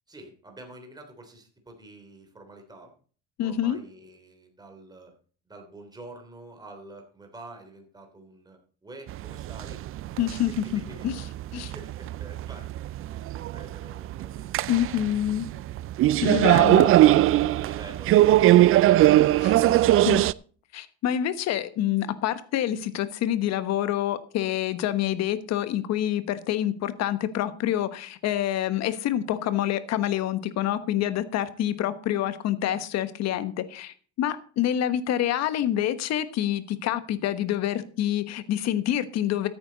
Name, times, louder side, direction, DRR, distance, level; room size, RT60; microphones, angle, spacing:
voice 1, 0.1-2.9 3.4-5.1 5.5-9.8 10.3-11.1 11.6-15.2, right 2 dB, 15° right, 4 dB, 3.2 m, -48 dB
voice 2, 3.4-3.8 10.2-11.2 11.5-11.7 14.7-15.5 16.2-16.9 19.4-19.6 19.9-20.2 20.7-39.5, left 11 dB, 60° left, 12 dB, 1.2 m, -27 dB
sound 1, 9.1-20.3, right 14 dB, 50° right, 0.4 m, -21 dB
14.0 x 8.8 x 4.0 m, 0.41 s
cardioid pair, 115°, 29 cm